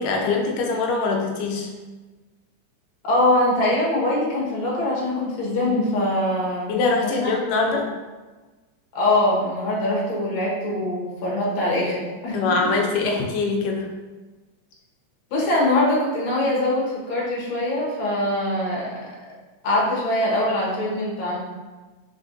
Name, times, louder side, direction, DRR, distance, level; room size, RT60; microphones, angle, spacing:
voice 1, 0.0-1.7 6.7-7.9 12.3-13.9, left 3 dB, 85° left, 1 dB, 2.3 m, -23 dB
voice 2, 3.0-6.7 7.0-7.8 8.9-12.4 12.6-12.7 15.3-19.0 19.6-21.4, left 1 dB, 55° left, -5 dB, 1.5 m, -23 dB
4.3 x 4.2 x 2.6 m, 1.3 s
omnidirectional pair, 3.7 m